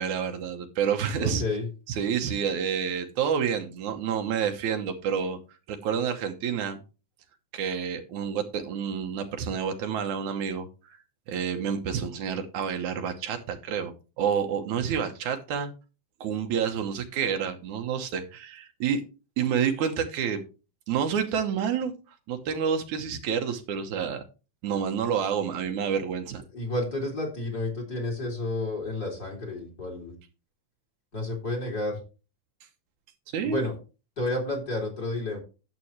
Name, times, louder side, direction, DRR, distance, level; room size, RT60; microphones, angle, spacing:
voice 1, 0.0-1.4 1.9-5.4 5.7-6.8 7.5-11.0 11.3-15.7 16.2-19.0 19.4-20.4 20.9-21.9 22.3-24.2 24.6-26.4 33.3-33.6, right 7 dB, 75° right, 2.4 m, -29 dB
voice 2, 1.2-1.7 26.5-30.2 31.1-32.0 33.4-33.8 34.2-35.4, left 2 dB, 30° left, 3.2 m, -31 dB
11.5 x 7.7 x 3.1 m
omnidirectional pair, 3.5 m